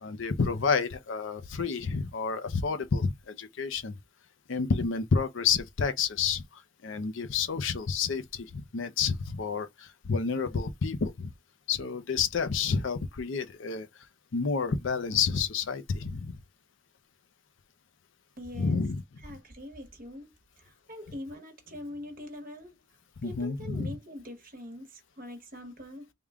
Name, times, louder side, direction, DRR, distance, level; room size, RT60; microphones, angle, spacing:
voice 1, 0.0-4.0 4.5-6.4 6.8-11.3 11.7-13.9 14.3-16.4 18.6-19.0 23.2-23.9, left 5 dB, 70° left, 0.6 m, -29 dB
voice 2, 18.4-18.9 19.2-22.8 23.2-26.1, left 1 dB, 45° right, 1.0 m, -43 dB
3.5 x 2.2 x 3.5 m
head